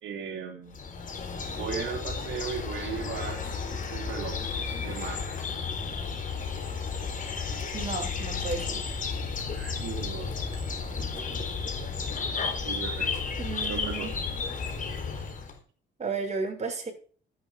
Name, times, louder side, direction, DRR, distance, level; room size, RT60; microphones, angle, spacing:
voice 1, 0.0-0.8 1.6-3.4 3.9-4.4 4.8-5.3 9.5-10.4 12.3-13.2 13.7-14.2, right 6 dB, 75° right, 1 dB, 3.1 m, -37 dB
sound 1, 0.7-15.6, left 5 dB, 40° left, 4.3 m, -33 dB
voice 2, 7.7-8.8 13.4-14.1 16.0-16.9, right 4 dB, 35° right, 2 dB, 7.0 m, -33 dB
14.0 x 11.0 x 5.1 m, 0.41 s
cardioid pair, 90°, 20 cm